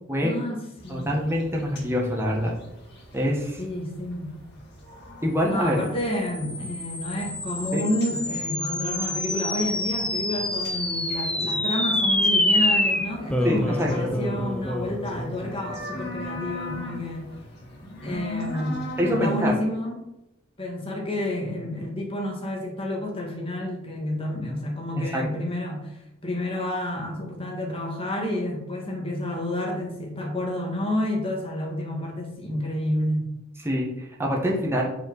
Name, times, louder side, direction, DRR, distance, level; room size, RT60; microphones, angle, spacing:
voice 1, 0.2-1.1 3.6-4.3 5.4-17.3 18.0-20.0 20.6-33.3, left 1 dB, 25° left, 0 dB, 1.7 m, -30 dB
sound 1, 0.8-19.5, equal, 55° left, 1.7 m, -39 dB
voice 2, 0.9-2.5 3.1-3.6 5.2-5.8 7.7-7.9 13.4-13.9 19.0-19.5 25.1-25.2 33.6-34.8, equal, 10° right, -2 dB, 1.5 m, -25 dB
sound 2, 5.9-16.5, left 1 dB, 5° left, 0.5 m, -27 dB
5.4 x 4.8 x 6.0 m, 0.86 s
head